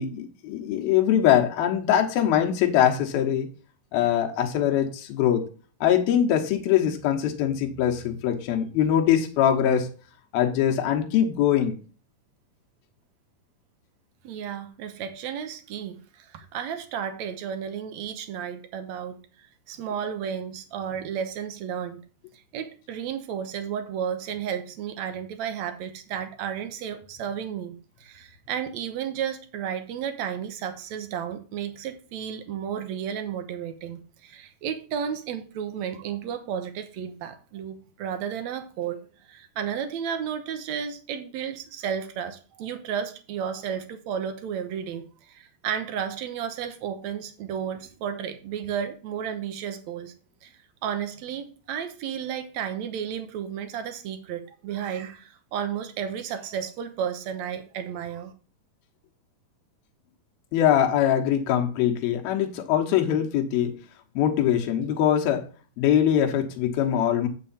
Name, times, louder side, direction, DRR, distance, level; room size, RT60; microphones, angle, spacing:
voice 1, 0.0-3.5 3.9-5.4 5.8-9.9 10.3-11.8 60.5-63.8 64.2-65.4 65.8-67.3, left 10 dB, 75° left, 2 dB, 3.1 m, -22 dB
voice 2, 14.2-22.0 22.5-50.1 50.4-50.5 50.8-58.3, right 8 dB, 70° right, 8 dB, 1.8 m, -33 dB
8.3 x 7.0 x 4.2 m, 0.37 s
omnidirectional pair, 4.4 m